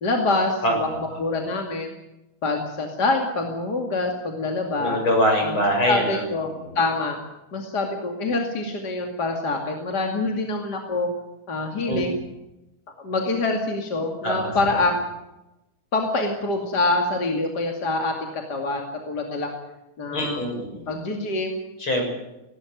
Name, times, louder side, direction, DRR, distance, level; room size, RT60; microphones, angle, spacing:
voice 1, 0.0-0.9 1.2-1.9 2.4-5.0 5.4-5.5 5.9-6.5 6.7-7.2 7.5-11.1 11.5-12.2 13.0-15.0 15.9-19.5 20.0-20.4 20.9-21.6, left 2 dB, 50° left, 2 dB, 3.1 m, -25 dB
voice 2, 0.6-1.2 4.8-6.3 6.6-6.7 11.9-12.0 14.2-14.6 20.1-20.9 21.8-22.0, equal, 80° left, 2 dB, 7.8 m, -24 dB
19.0 x 18.5 x 9.3 m, 0.95 s
omnidirectional pair, 2.2 m